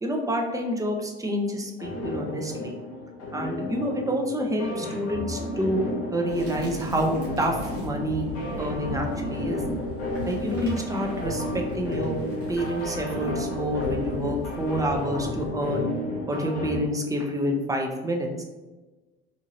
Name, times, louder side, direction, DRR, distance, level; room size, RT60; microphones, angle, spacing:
voice 1, 0.0-2.7 3.3-5.8 6.1-8.3 8.6-9.6 10.3-12.2 12.5-15.9 16.3-18.4, equal, 10° right, 1 dB, 0.5 m, -28 dB
sound 1, 1.8-16.8, left 1 dB, 80° left, 0.9 m, -33 dB
sound 2, 6.3-15.5, left 1 dB, 85° right, 1.0 m, -37 dB
2.8 x 2.7 x 2.7 m, 1.2 s
hypercardioid pair, 65°, 33 cm